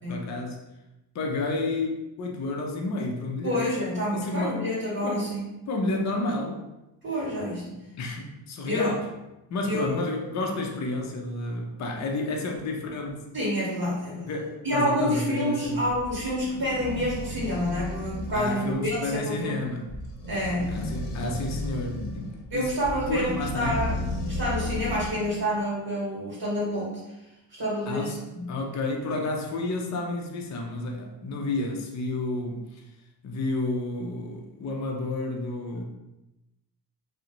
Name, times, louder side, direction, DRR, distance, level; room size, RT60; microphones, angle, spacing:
voice 1, 0.1-0.6 1.1-3.7 3.9-4.7 5.0-5.3 5.7-6.6 7.7-9.1 9.5-13.2 14.3-15.9 18.3-19.9 20.7-22.7 23.1-23.8 27.9-28.1 28.5-32.8 33.2-35.8, left 2 dB, 35° left, 1 dB, 0.5 m, -31 dB
voice 2, 3.4-5.4 7.0-7.7 8.6-9.0 9.6-9.9 13.3-14.3 14.6-19.6 20.3-20.8 22.5-24.0 24.3-27.0 27.6-28.6, equal, 35° right, -7 dB, 1.1 m, -28 dB
sound 1, 15.7-25.3, left 1 dB, 70° left, 0.8 m, -34 dB
2.4 x 2.1 x 2.9 m, 0.94 s
supercardioid pair, 65°, 47 cm